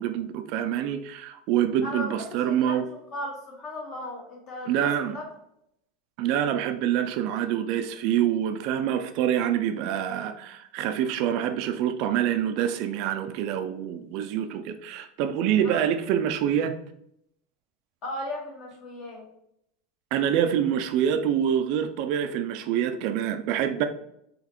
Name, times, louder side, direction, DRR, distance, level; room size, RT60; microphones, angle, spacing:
voice 1, 0.0-2.8 4.7-5.2 6.2-16.8 20.1-23.8, right 10 dB, 55° right, 8 dB, 0.3 m, -26 dB
voice 2, 1.8-2.2 2.4-2.8 3.1-5.2 15.6-15.8 18.0-19.2, left 1 dB, 40° left, -1 dB, 1.4 m, -36 dB
3.9 x 3.1 x 3.0 m, 0.75 s
supercardioid pair, 150°, 0 cm